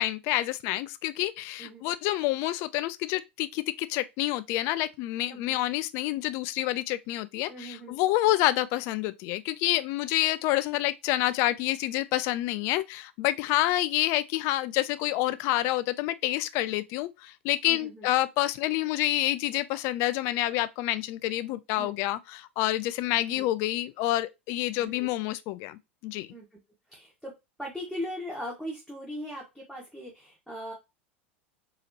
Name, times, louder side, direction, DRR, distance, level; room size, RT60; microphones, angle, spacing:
voice 1, 0.0-26.3, left 15 dB, 45° left, 0.3 m, -28 dB
voice 2, 5.3-5.6 7.5-8.0 17.7-18.1 21.8-21.9 23.3-23.5 24.8-25.1 26.3-26.5 26.9-27.3 27.6-30.7, equal, ahead, 1.3 m, -39 dB
4.1 x 2.8 x 2.8 m
figure-of-eight pair, 85°, 6 cm